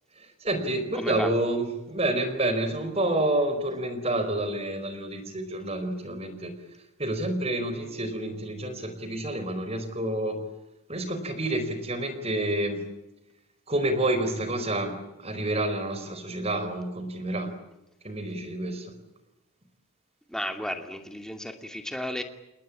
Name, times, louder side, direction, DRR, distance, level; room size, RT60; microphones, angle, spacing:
voice 1, 0.4-6.5 7.0-10.4 10.9-12.8 13.7-17.5 18.0-18.9, right 1 dB, 30° right, 9 dB, 4.8 m, -29 dB
voice 2, 0.9-1.3 20.3-22.2, left 1 dB, 5° left, 5 dB, 2.6 m, -33 dB
29.5 x 20.0 x 8.6 m, 0.94 s
head